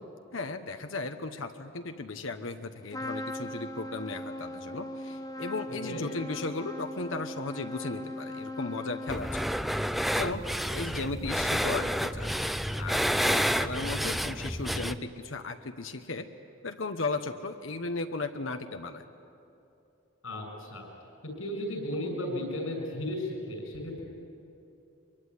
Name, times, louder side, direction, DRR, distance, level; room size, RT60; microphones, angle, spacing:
voice 1, 0.3-9.6 10.1-10.4 10.7-12.3 12.8-16.3 16.6-19.0, left 3 dB, 70° left, 7 dB, 1.1 m, -36 dB
Trumpet, 2.9-9.8, left 1 dB, 20° left, 1.1 m, -39 dB
sound 1, 9.1-15.0, equal, ahead, 0.5 m, -29 dB
voice 2, 20.2-20.9 21.4-24.0, left 1 dB, 90° left, 3 dB, 7.1 m, -34 dB
23.5 x 23.0 x 9.8 m, 2.8 s
head